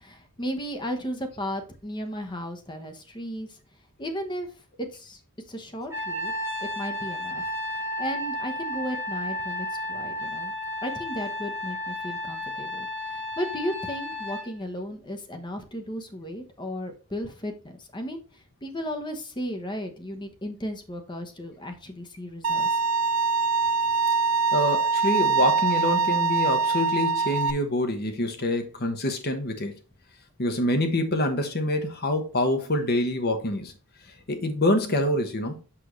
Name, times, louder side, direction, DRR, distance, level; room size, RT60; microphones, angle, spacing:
voice 1, 0.0-3.6 4.0-4.5 4.8-5.2 5.5-6.3 6.6-7.5 7.7-10.5 10.8-22.8, equal, 20° left, 0.9 m, -35 dB
Trumpet, 5.9-14.5, left 1 dB, 10° right, 1.2 m, -33 dB
Bowed string instrument, 22.4-27.5, right 5 dB, 70° right, 0.5 m, -23 dB
voice 2, 24.5-29.8 30.4-33.7 34.3-35.6, left 1 dB, 45° left, 1.1 m, -26 dB
6.3 x 6.1 x 3.1 m
head